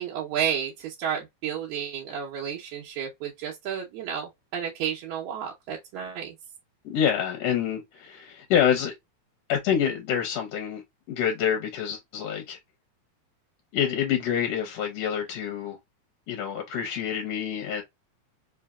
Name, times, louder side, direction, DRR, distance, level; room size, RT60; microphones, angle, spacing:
voice 1, 0.0-6.3, right 8 dB, 80° right, 2.1 m, -32 dB
voice 2, 6.8-8.9 9.5-10.8 11.1-12.6 13.7-15.8 16.3-17.8, left 8 dB, 70° left, 1.9 m, -27 dB
4.8 x 2.7 x 2.3 m
omnidirectional pair, 3.3 m